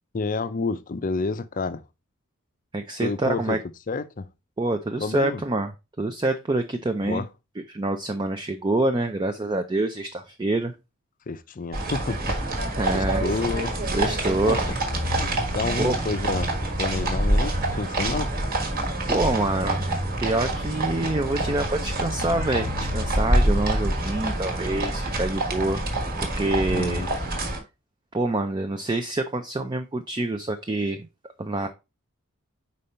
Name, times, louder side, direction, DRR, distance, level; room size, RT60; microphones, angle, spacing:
voice 1, 0.1-1.8 3.0-3.6 3.9-4.3 5.0-5.4 7.0-7.3 11.3-13.7 14.4-14.6 15.5-18.4 26.7-27.3, left 4 dB, 40° left, 0.5 m, -29 dB
voice 2, 2.7-3.6 4.6-5.7 6.0-7.2 7.7-10.7 12.8-13.4 13.9-14.6 15.8-16.0 19.1-19.9 20.2-25.8 26.2-27.0 28.1-31.1 31.4-31.7, right 2 dB, 20° right, 0.4 m, -26 dB
sound 1, 11.7-27.6, right 1 dB, 45° right, 1.4 m, -26 dB
5.3 x 4.3 x 4.2 m
head